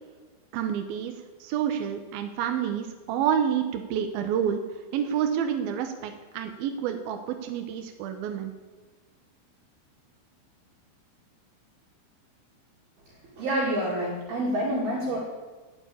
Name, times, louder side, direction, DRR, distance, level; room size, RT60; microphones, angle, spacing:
voice 1, 0.5-1.1 1.4-4.6 4.9-8.5, right 8 dB, 75° right, 6 dB, 2.2 m, -28 dB
voice 2, 13.4-15.2, right 1 dB, 55° right, -5 dB, 4.0 m, -27 dB
16.5 x 7.3 x 8.5 m, 1.4 s
omnidirectional pair, 5.6 m